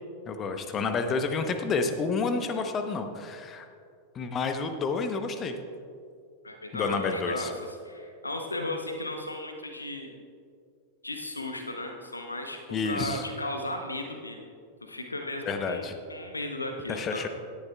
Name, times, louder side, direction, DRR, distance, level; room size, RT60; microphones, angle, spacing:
voice 1, 0.3-3.7 4.1-5.5 6.7-7.5 12.7-13.2 15.5-15.9 16.9-17.3, left 4 dB, 25° left, 7 dB, 0.9 m, -29 dB
voice 2, 6.4-10.1 11.0-14.4 14.8-17.2, left 1 dB, 80° left, 4 dB, 0.8 m, -35 dB
17.0 x 11.0 x 2.3 m, 2.3 s
figure-of-eight pair, 90°, 0 cm